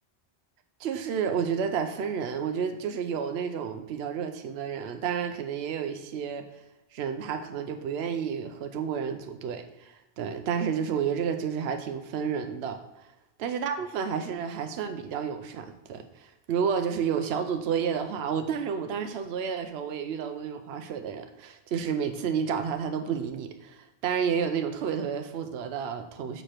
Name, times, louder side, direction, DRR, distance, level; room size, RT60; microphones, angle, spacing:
voice 1, 0.8-6.5 6.9-12.8 13.4-26.4, right 7 dB, 70° right, 6 dB, 0.8 m, -31 dB
6.6 x 4.9 x 4.3 m, 0.96 s
omnidirectional pair, 1.1 m